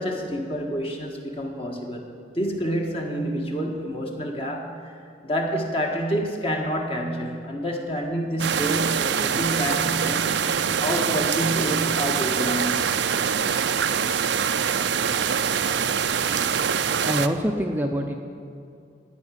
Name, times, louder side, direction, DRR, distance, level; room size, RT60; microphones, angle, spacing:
voice 1, 0.0-2.1 2.4-4.9 5.2-10.5 10.8-12.9, equal, 30° left, 1 dB, 1.6 m, -28 dB
sound 1, 8.4-17.3, right 7 dB, 70° right, 0.5 m, -24 dB
voice 2, 17.0-18.1, equal, 10° right, 2 dB, 0.6 m, -25 dB
17.0 x 6.0 x 9.9 m, 2.5 s
head